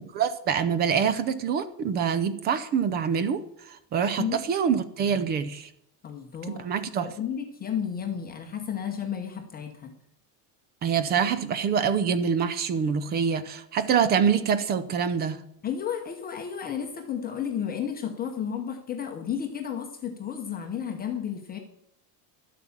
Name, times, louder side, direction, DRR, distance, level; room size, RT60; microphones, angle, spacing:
voice 1, 0.1-5.7 6.5-7.1 10.8-15.4, right 7 dB, 20° right, 14 dB, 0.4 m, -25 dB
voice 2, 6.0-6.6 7.0-9.9 15.6-21.6, left 8 dB, 20° left, 4 dB, 0.8 m, -32 dB
12.0 x 8.2 x 7.2 m, 0.76 s
cardioid pair, 170°, 47 cm